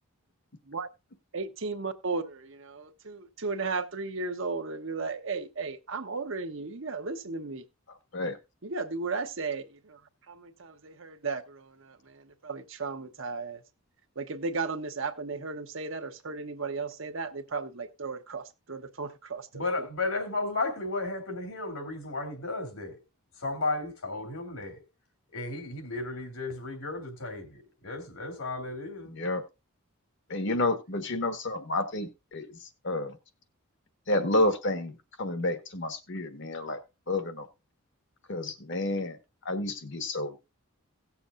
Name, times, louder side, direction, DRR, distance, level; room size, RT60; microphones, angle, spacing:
voice 1, 1.3-7.7 8.6-10.0 10.3-13.6 14.2-19.9, right 4 dB, 60° right, 0.9 m, -35 dB
voice 2, 19.5-23.0 23.4-24.8 25.3-29.2, left 2 dB, 75° left, 2.8 m, -34 dB
voice 3, 29.1-29.4 30.3-33.2 34.1-36.8 37.1-37.5 38.3-39.2 39.4-40.4, left 2 dB, 55° left, 1.3 m, -30 dB
17.5 x 7.1 x 2.5 m
head